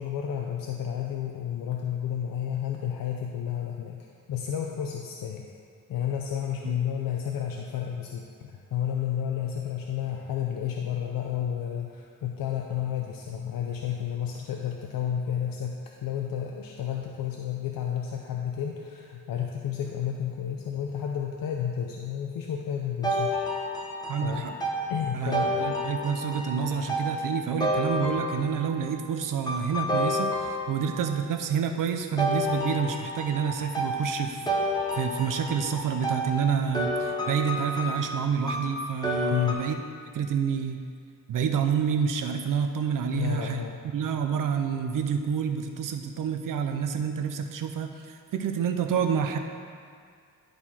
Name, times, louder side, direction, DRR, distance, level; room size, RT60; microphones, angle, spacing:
voice 1, 0.0-5.5 5.9-23.4 24.2-24.5 24.9-25.5 39.3-39.6 43.1-43.8, left 9 dB, 80° left, 1 dB, 0.6 m, -31 dB
sound 1, 23.0-28.8 29.5-31.1 32.2-39.5, equal, 10° left, 1.0 m, -30 dB
voice 2, 24.1-24.6 25.1-34.4 34.9-39.8 40.1-40.8 41.3-43.6 43.9-49.4, right 7 dB, 70° right, 5 dB, 0.6 m, -28 dB
11.0 x 4.4 x 4.3 m, 2.1 s
wide cardioid pair, 145°, 34 cm